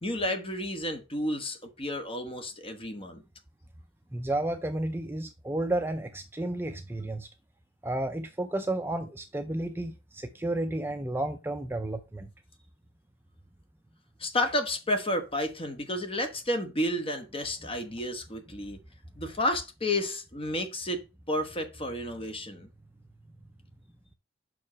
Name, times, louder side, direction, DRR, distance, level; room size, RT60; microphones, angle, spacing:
voice 1, 0.0-3.2 14.2-18.8 19.2-21.0 21.3-22.7, left 1 dB, 25° left, 1.2 m, -31 dB
voice 2, 4.1-7.3 7.8-12.3, right 1 dB, 10° right, 0.5 m, -32 dB
5.6 x 4.9 x 5.7 m
head